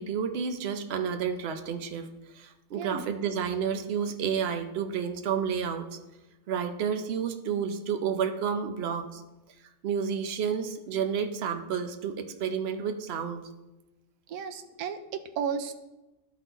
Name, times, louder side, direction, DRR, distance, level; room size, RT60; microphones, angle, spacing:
voice 1, 0.0-2.1 2.3-5.9 6.5-9.2 9.8-13.5, right 7 dB, 55° right, 7 dB, 0.7 m, -30 dB
voice 2, 2.7-3.0 14.3-15.7, right 7 dB, 80° right, 9 dB, 1.1 m, -34 dB
12.5 x 4.1 x 4.0 m, 1.0 s
omnidirectional pair, 1.6 m